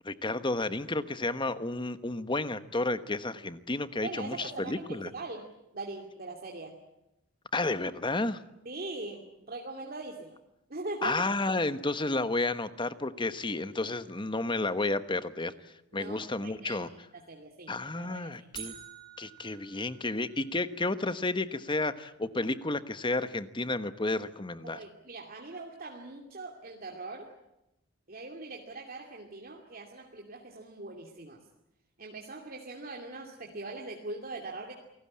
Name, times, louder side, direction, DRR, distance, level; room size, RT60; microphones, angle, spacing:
voice 1, 0.0-5.1 7.5-8.4 11.0-16.9 17.7-18.7 19.2-24.8, left 2 dB, 25° left, 12 dB, 1.2 m, -31 dB
voice 2, 4.0-5.4 5.7-6.7 8.7-10.4 10.7-11.2 15.9-16.2 16.4-16.9 17.3-17.7 18.0-18.3 24.6-27.3 28.1-31.4 32.0-34.7, right 2 dB, 45° right, 1 dB, 2.7 m, -41 dB
sound 1, 18.5-20.7, right 10 dB, 20° right, 6.1 m, -47 dB
28.5 x 19.0 x 8.7 m, 0.88 s
head